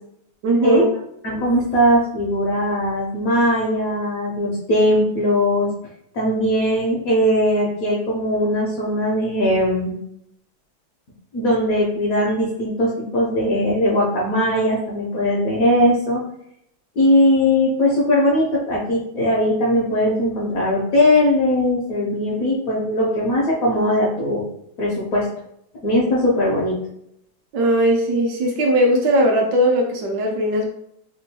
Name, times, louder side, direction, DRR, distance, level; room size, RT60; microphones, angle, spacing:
voice 1, 0.4-0.9 27.5-30.7, equal, 70° right, 0 dB, 1.1 m, -18 dB
voice 2, 1.2-5.7 6.1-9.9 11.3-16.2 17.0-24.4 24.8-25.3 25.8-26.8, equal, 65° left, -4 dB, 0.9 m, -19 dB
3.5 x 2.2 x 2.7 m, 0.74 s
omnidirectional pair, 2.1 m